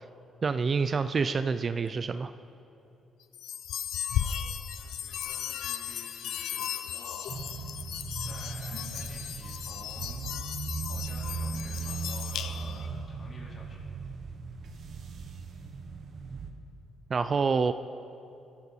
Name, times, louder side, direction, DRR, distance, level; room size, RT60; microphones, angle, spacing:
voice 1, 0.4-2.3 17.1-17.7, right 5 dB, 40° right, 11 dB, 0.5 m, -27 dB
sound 1, 3.3-12.9, left 10 dB, 80° left, 0.6 m, -36 dB
voice 2, 4.2-7.5 8.2-10.2 10.9-13.7, left 2 dB, 45° left, -4 dB, 4.4 m, -51 dB
sound 2, 7.3-16.5, right 5 dB, 65° right, 1.4 m, -38 dB
20.5 x 13.0 x 4.4 m, 2.7 s
cardioid pair, 90°, 0 cm